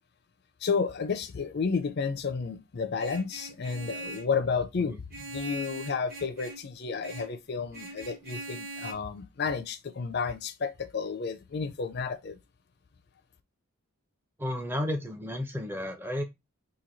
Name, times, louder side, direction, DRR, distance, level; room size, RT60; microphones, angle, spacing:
voice 1, 0.6-12.4, left 5 dB, 50° left, 0.4 m, -31 dB
Vehicle horn car horn honking, 3.0-4.4 5.1-6.7 7.0-7.4 7.7-8.9, right 2 dB, 45° right, 1.0 m, -41 dB
voice 2, 14.4-16.2, left 1 dB, 10° right, 0.6 m, -32 dB
3.0 x 2.6 x 3.9 m
head